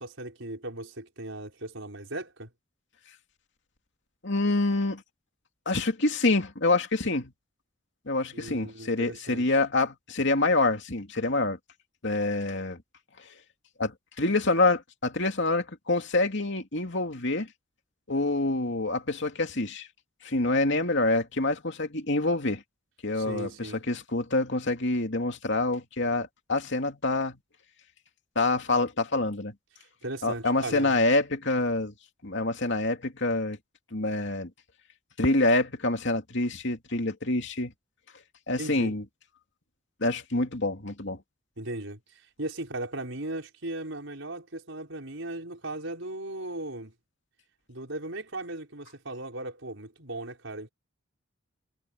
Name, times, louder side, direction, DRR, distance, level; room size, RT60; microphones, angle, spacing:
voice 1, 0.0-2.5 8.3-9.4 23.1-23.8 30.0-31.0 38.6-39.0 41.6-46.9 47.7-50.7, right 2 dB, 70° right, 5.7 m, -37 dB
voice 2, 4.2-5.0 5.7-7.3 8.1-11.6 12.0-12.8 13.8-17.5 18.1-19.9 20.2-22.6 23.0-27.4 28.3-29.5 30.2-31.9 32.2-33.6 33.9-34.5 35.2-37.7 38.5-39.0 40.0-41.2, left 2 dB, 60° left, 2.8 m, -26 dB
head